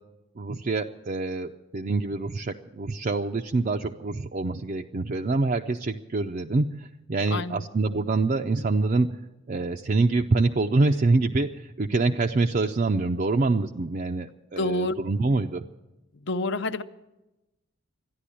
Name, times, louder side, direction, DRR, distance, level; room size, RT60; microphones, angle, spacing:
voice 1, 0.4-9.2 9.5-15.7, right 3 dB, 40° right, 3 dB, 0.4 m, -25 dB
voice 2, 7.3-7.7 14.6-14.9 16.2-16.8, left 2 dB, 55° left, 12 dB, 0.6 m, -28 dB
13.5 x 11.0 x 9.9 m, 1.0 s
head